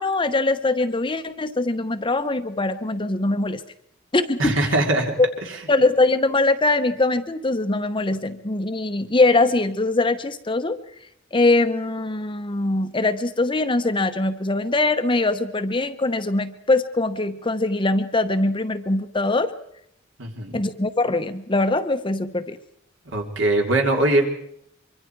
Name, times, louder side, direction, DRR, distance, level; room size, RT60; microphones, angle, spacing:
voice 1, 0.0-3.6 4.1-4.6 5.7-10.8 11.3-19.5 20.5-22.6, left 2 dB, 25° left, 9 dB, 0.8 m, -22 dB
voice 2, 4.4-5.1 5.4-5.5 20.2-20.6 23.0-24.2, right 2 dB, 65° right, 2 dB, 3.2 m, -21 dB
24.0 x 24.0 x 4.6 m, 0.73 s
head